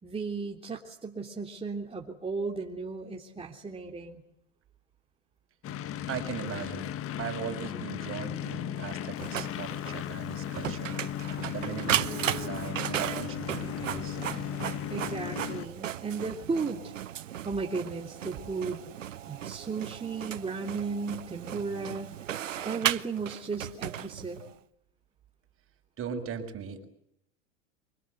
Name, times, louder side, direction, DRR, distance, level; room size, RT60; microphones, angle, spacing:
voice 1, 0.0-4.2 14.9-16.9 17.4-18.8 19.3-22.1 22.5-24.4, right 4 dB, 15° right, 0 dB, 3.5 m, -35 dB
sound 1, 5.6-15.7, left 10 dB, 35° left, 1.4 m, -36 dB
voice 2, 6.1-11.0 11.5-14.2 18.4-18.5 19.6-19.7 26.0-26.8, right 7 dB, 35° right, 6 dB, 6.2 m, -39 dB
Printer, 9.2-24.5, right 11 dB, 90° right, 1.0 m, -36 dB
25.5 x 23.5 x 8.1 m, 0.76 s
hypercardioid pair, 95°, 37 cm